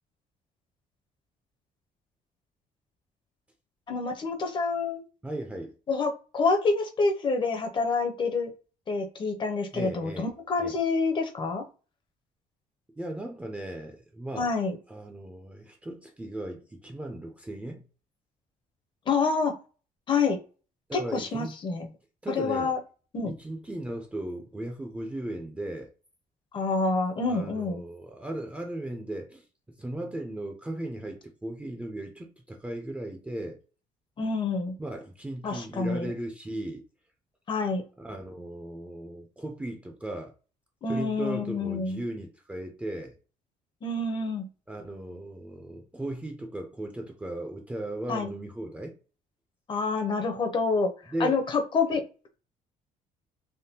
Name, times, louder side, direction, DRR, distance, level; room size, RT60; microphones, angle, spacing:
voice 1, 3.9-5.0 5.9-8.5 8.9-11.6 14.4-14.8 19.1-19.5 20.1-20.4 20.9-21.9 22.3-22.8 23.1-23.3 26.5-27.8 34.2-34.7 35.4-36.1 37.5-37.8 40.8-42.0 43.8-44.5 48.1-48.3 49.7-50.9 51.2-52.0, left 4 dB, 35° left, 0.6 m, -27 dB
voice 2, 5.2-5.7 9.7-10.3 10.6-10.7 13.0-14.5 14.9-17.8 20.9-21.6 22.2-22.7 23.2-25.9 27.3-33.6 34.8-36.8 38.0-40.3 40.9-43.2 44.7-48.9 51.1-51.4, right 1 dB, 10° right, 0.5 m, -37 dB
3.5 x 2.1 x 2.7 m
cardioid pair, 135°, 15 cm